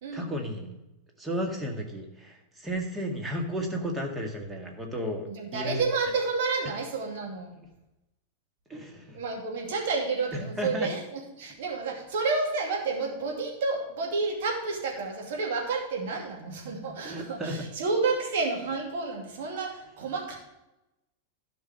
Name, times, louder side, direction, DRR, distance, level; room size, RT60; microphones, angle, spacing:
voice 1, 0.1-0.7 1.2-5.3 5.5-5.8 8.7-9.2 10.3-10.9 17.0-17.6, equal, 10° right, 1 dB, 1.9 m, -33 dB
voice 2, 5.3-7.5 9.1-20.4, right 4 dB, 55° right, 0 dB, 2.5 m, -30 dB
12.5 x 5.2 x 6.4 m, 0.93 s
figure-of-eight pair, 90°, 0 cm